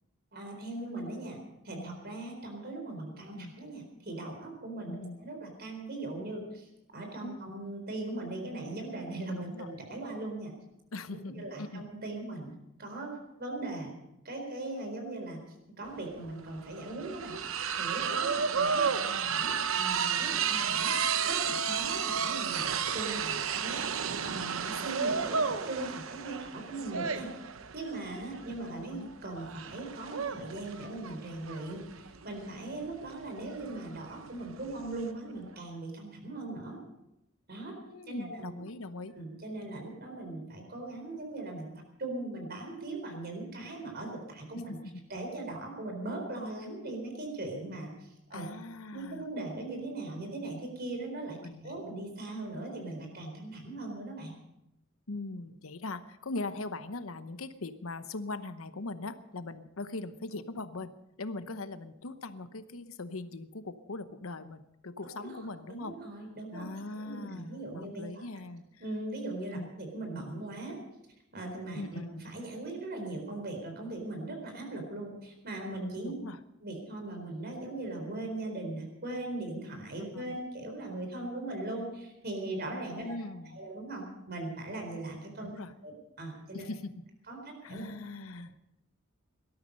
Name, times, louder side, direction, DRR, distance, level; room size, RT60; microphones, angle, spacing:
voice 1, 0.3-1.4 1.6-10.5 11.4-12.5 12.8-13.9 14.2-15.4 15.8-17.4 17.8-27.3 27.7-36.8 37.5-37.8 38.1-38.5 39.2-41.7 42.0-44.8 45.1-48.4 48.9-54.3 65.2-68.3 68.8-70.8 71.3-76.1 76.6-83.1 83.5-85.5 85.8-85.9 86.2-86.7 87.3-87.4 87.7-87.9, right 2 dB, 50° right, 3 dB, 4.2 m, -39 dB
voice 2, 4.9-5.2 7.2-7.7 9.4-9.7 10.9-11.9 18.8-19.4 28.8-29.1 37.9-39.2 44.5-44.8 48.3-49.3 51.4-52.0 55.1-60.9 61.2-65.9 66.5-68.8 69.5-69.7 71.7-72.1 76.0-76.4 80.1-80.4 82.9-83.6 85.4-85.7 86.5-87.0 87.6-88.5, left 2 dB, 90° left, 11 dB, 0.9 m, -41 dB
sound 1, 15.9-16.0 16.2-35.1, right 6 dB, 75° right, 0.9 m, -32 dB
18.5 x 12.5 x 5.4 m, 0.86 s
head